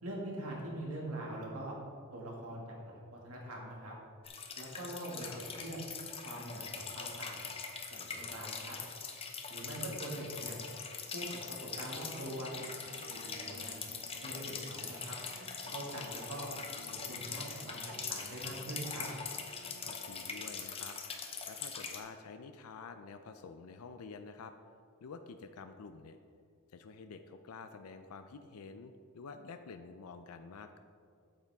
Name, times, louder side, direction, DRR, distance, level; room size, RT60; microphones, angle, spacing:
voice 1, 0.0-1.7 2.1-3.9 4.6-5.8 6.2-7.5 7.9-8.8 9.5-10.6 11.1-11.4 11.8-12.6 13.1-13.7 14.2-15.2 15.7-16.5 16.9-19.1, right 1 dB, 85° right, -2 dB, 2.0 m, -43 dB
sound 1, 4.2-22.0, left 5 dB, 25° left, 0.7 m, -43 dB
sound 2, 11.7-20.4, right 1 dB, 40° right, 1.0 m, -54 dB
voice 2, 19.8-24.5 25.0-26.2 26.7-30.8, left 4 dB, 80° left, 8 dB, 0.4 m, -49 dB
8.6 x 8.1 x 3.5 m, 2.3 s
head